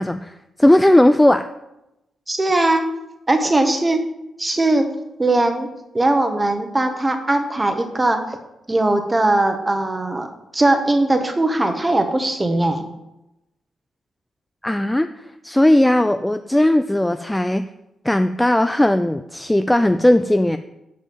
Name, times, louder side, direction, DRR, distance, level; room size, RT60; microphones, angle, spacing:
voice 1, 0.0-1.5 14.6-17.7 18.0-20.6, left 1 dB, 5° left, 10 dB, 0.3 m, -17 dB
voice 2, 2.3-2.9 3.3-4.0 4.4-4.9 5.2-5.7 5.9-8.2 8.7-12.8, right 2 dB, 15° right, 6 dB, 1.0 m, -19 dB
7.5 x 7.4 x 7.1 m, 0.91 s
wide cardioid pair, 175°, 0 cm